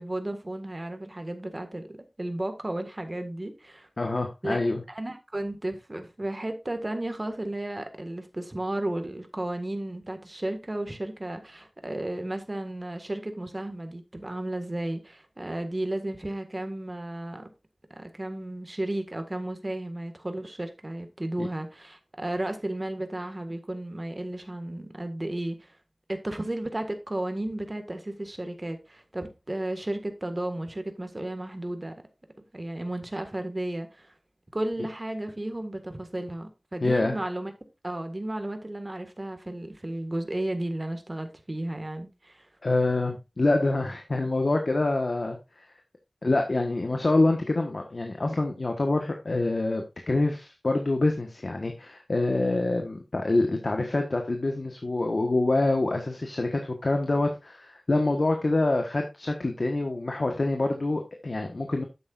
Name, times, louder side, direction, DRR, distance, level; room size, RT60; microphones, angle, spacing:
voice 1, 0.0-1.8 2.2-3.9 4.4-4.6 4.9-17.5 17.9-25.7 26.1-31.9 32.4-34.1 34.5-37.5 37.8-42.5, right 1 dB, 35° right, 1.8 m, -33 dB
voice 2, 4.0-4.8 21.4-21.5 36.8-37.2 42.6-45.4 46.2-61.8, left 2 dB, 60° left, 1.3 m, -26 dB
10.0 x 8.0 x 2.5 m
wide cardioid pair, 55°, 0 cm